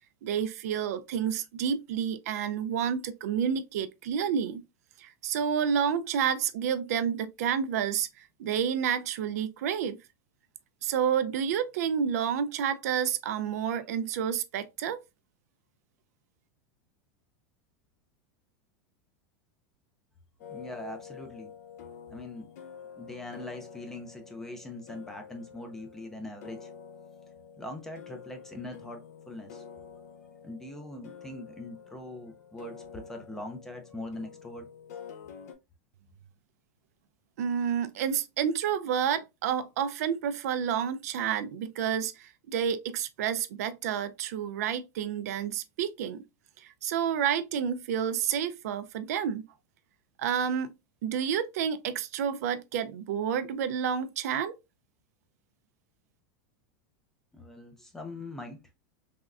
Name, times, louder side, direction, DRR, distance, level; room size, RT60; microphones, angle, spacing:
voice 1, 0.2-4.6 5.0-10.0 10.8-15.0 37.4-46.2 46.6-49.4 50.2-50.7 51.0-54.6, right 8 dB, 75° right, 0.3 m, -29 dB
sound 1, 20.4-35.5, left 7 dB, 75° left, 0.5 m, -48 dB
voice 2, 20.5-21.5 22.1-22.5 23.0-26.7 27.6-29.6 30.4-34.7 57.3-58.6, left 1 dB, 5° left, 0.4 m, -42 dB
3.5 x 2.1 x 2.3 m
supercardioid pair, 170°, 8 cm